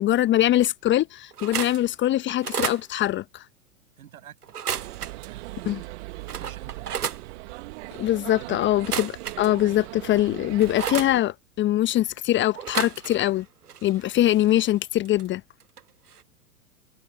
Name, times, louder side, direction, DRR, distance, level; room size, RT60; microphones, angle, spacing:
voice 1, 0.0-3.4 5.7-5.8 8.0-13.4 13.8-15.4, left 13 dB, 25° left, 1.1 m, -23 dB
sound 1, 1.3-1.8 2.3-2.8 4.4-5.3 5.8-5.9 6.3-7.2 8.7-9.8 10.2-11.1 12.5-13.4 13.6-15.3 15.6-15.8 16.1-16.2, right 8 dB, 85° right, 0.8 m, -32 dB
voice 2, 4.0-4.4 4.8-5.9 6.2-7.0 8.4-8.6, right 10 dB, 65° right, 7.3 m, -47 dB
sound 2, 4.7-11.2, right 22 dB, 50° right, 2.0 m, -39 dB
figure-of-eight pair, 100°, 45 cm